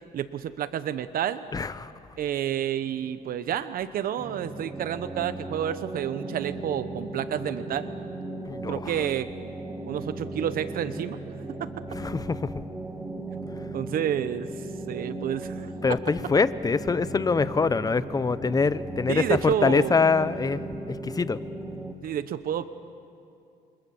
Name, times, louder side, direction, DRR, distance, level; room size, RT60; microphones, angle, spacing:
voice 1, 0.1-1.4 2.2-7.9 8.7-9.3 9.9-11.2 13.7-14.5 14.9-15.7 19.1-20.0 22.0-22.6, right 10 dB, 60° right, 12 dB, 1.0 m, -29 dB
voice 2, 1.5-1.9 8.5-8.9 11.9-12.5 15.8-20.6 20.9-21.4, left 4 dB, 20° left, 15 dB, 0.8 m, -24 dB
sound 1, 4.2-21.9, right 2 dB, 10° right, 1.6 m, -37 dB
28.5 x 26.0 x 7.2 m, 2.5 s
cardioid pair, 110°, 17 cm